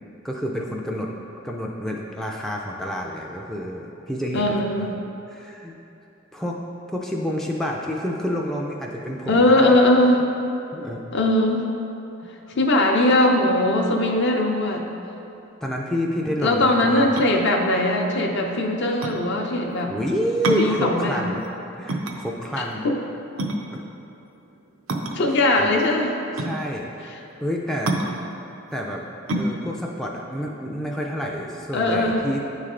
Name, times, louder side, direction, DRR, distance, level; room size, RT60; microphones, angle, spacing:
voice 1, 0.2-1.1 1.4-4.9 5.3-5.8 6.3-6.6 6.9-9.8 10.7-11.0 15.6-17.2 19.8-21.5 21.8-22.9 23.7-23.9 25.6-25.7 26.4-26.9 27.4-27.9 28.7-29.0 29.3-32.4, equal, ahead, -2 dB, 0.3 m, -28 dB
voice 2, 4.3-4.9 9.3-10.2 11.1-11.7 12.5-14.9 16.4-19.9 20.5-21.3 22.8-23.0 25.1-26.2 31.7-32.2, left 1 dB, 60° left, 1 dB, 0.6 m, -20 dB
sound 1, 17.0-31.4, right 1 dB, 85° right, 0.5 m, -30 dB
9.2 x 3.2 x 3.7 m, 2.8 s
head